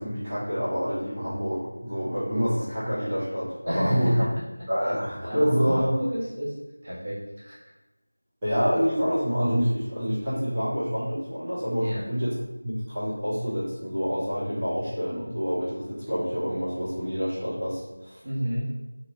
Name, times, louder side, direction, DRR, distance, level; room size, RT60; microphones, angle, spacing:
voice 1, 0.0-4.3 4.7-5.9 8.4-12.3 12.6-18.2, equal, 10° right, -19 dB, 0.8 m, -27 dB
voice 2, 3.6-4.3 4.8-5.0 5.2-6.6 6.8-7.7 11.8-12.0 18.2-18.7, equal, 45° right, -7 dB, 1.1 m, -31 dB
3.0 x 2.4 x 3.1 m, 1.0 s
figure-of-eight pair, 175°, 0 cm